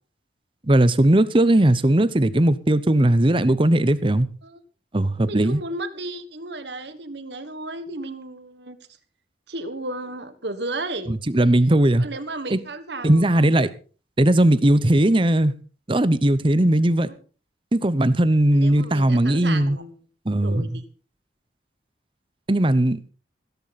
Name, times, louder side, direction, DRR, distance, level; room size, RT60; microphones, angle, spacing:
voice 1, 0.7-4.3 4.9-5.6 11.1-12.0 12.5-12.6 13.0-13.7 14.2-15.5 15.9-17.1 17.7-19.8 20.3-20.8 22.5-23.1, right 1 dB, 30° right, 0.8 m, -18 dB
voice 2, 5.3-8.8 9.5-11.1 12.0-13.6 18.5-19.9 20.3-20.8, right 2 dB, 70° right, 1.5 m, -34 dB
16.0 x 14.0 x 4.1 m
head